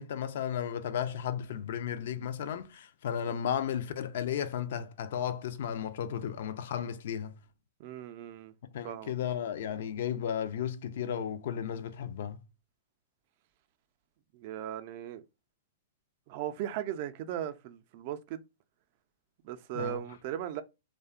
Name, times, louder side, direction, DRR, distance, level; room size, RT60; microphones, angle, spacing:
voice 1, 0.0-7.4 8.7-12.4 19.7-20.0, left 9 dB, 65° left, 0.3 m, -34 dB
voice 2, 7.8-8.5 8.8-9.1 14.3-15.2 16.3-18.4 19.4-20.6, right 11 dB, 50° right, 0.3 m, -37 dB
2.6 x 2.1 x 2.4 m
hypercardioid pair, 120°, 0 cm